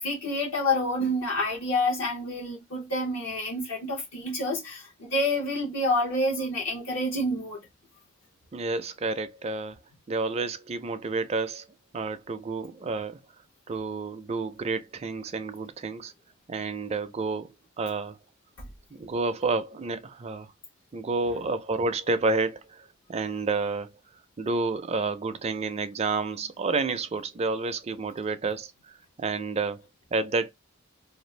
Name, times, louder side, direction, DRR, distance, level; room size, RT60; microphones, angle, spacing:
voice 1, 0.0-7.6 18.6-18.7 21.2-21.4, left 1 dB, 70° left, 0.9 m, -28 dB
voice 2, 8.5-9.8 10.1-11.6 11.9-13.2 13.7-16.1 16.5-18.2 19.0-20.5 20.9-23.9 24.4-28.7 29.2-29.8 30.1-30.5, right 3 dB, 30° right, 0.4 m, -30 dB
2.5 x 2.4 x 3.1 m
head